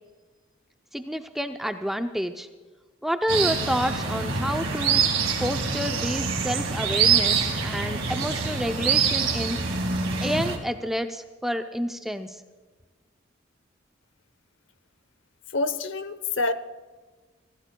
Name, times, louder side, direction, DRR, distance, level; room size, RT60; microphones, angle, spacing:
voice 1, 0.9-2.5 3.0-5.0 5.4-9.7 10.2-12.4, equal, ahead, 7 dB, 0.5 m, -29 dB
sound 1, 3.3-10.6, right 6 dB, 90° right, 2.0 m, -25 dB
voice 2, 15.5-16.5, left 3 dB, 65° left, 13 dB, 0.7 m, -26 dB
25.0 x 15.5 x 2.2 m, 1.3 s
head